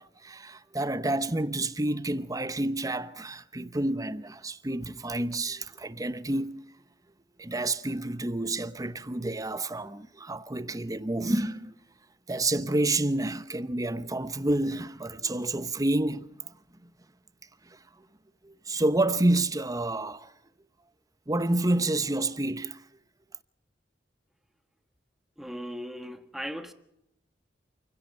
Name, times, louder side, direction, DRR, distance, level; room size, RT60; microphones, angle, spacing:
voice 1, 0.0-6.6 7.4-11.7 12.3-16.5 17.7-17.8 18.4-20.3 21.3-22.8, right 2 dB, 20° right, 0.9 m, -29 dB
voice 2, 25.4-26.7, equal, ahead, 1.5 m, -37 dB
28.5 x 16.5 x 5.5 m
head